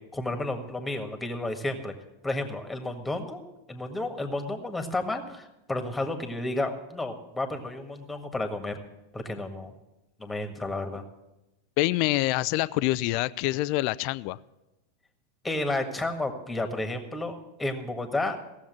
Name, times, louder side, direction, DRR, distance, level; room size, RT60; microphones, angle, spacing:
voice 1, 0.1-1.9 2.2-3.4 3.7-8.8 9.1-9.7 10.2-11.0 15.4-18.4, left 2 dB, 10° left, 1.7 m, -31 dB
voice 2, 11.8-14.4, left 18 dB, 50° left, 0.4 m, -26 dB
16.5 x 7.2 x 7.5 m
figure-of-eight pair, 90°, 0 cm